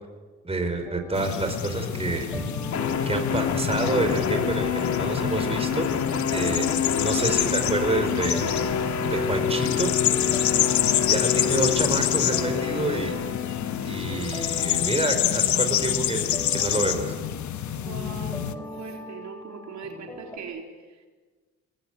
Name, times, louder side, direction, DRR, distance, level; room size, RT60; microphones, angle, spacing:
voice 1, 0.4-2.5 3.1-5.9 6.3-6.7 7.0-8.5 9.1-9.9 11.0-13.2 13.8-17.1, right 2 dB, 20° right, 5 dB, 4.8 m, -28 dB
sound 1, 0.9-20.4, left 3 dB, 10° left, 4.8 m, -40 dB
sound 2, 1.1-18.5, left 11 dB, 70° left, 1.4 m, -27 dB
sound 3, 2.7-15.7, left 6 dB, 55° left, 2.9 m, -28 dB
voice 2, 17.7-21.1, right 5 dB, 65° right, 2 dB, 4.1 m, -41 dB
28.0 x 20.5 x 9.1 m, 1.4 s
cardioid pair, 90°, 30 cm